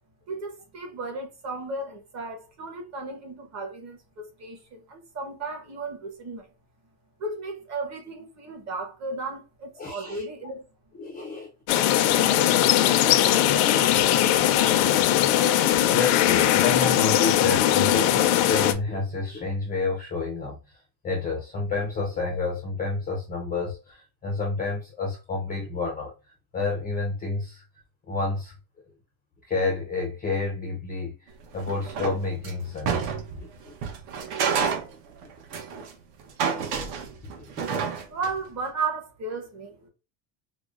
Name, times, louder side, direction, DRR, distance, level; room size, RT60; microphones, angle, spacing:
voice 1, 0.3-6.5 7.2-10.7 38.1-39.9, right 3 dB, 35° right, 1.0 m, -34 dB
voice 2, 9.8-10.2 11.0-11.5 15.9-20.8 21.0-26.1 26.5-27.6 28.1-28.5 29.5-33.7 34.4-34.6 35.2-35.3 37.4-37.5, left 3 dB, 20° left, 0.4 m, -30 dB
sound 1, 11.7-18.7, left 12 dB, 85° left, 0.6 m, -20 dB
sound 2, 31.4-33.4 33.8-35.9 36.2-38.4, right 6 dB, 60° right, 0.9 m, -29 dB
4.9 x 2.1 x 2.4 m
cardioid pair, 165°, 48 cm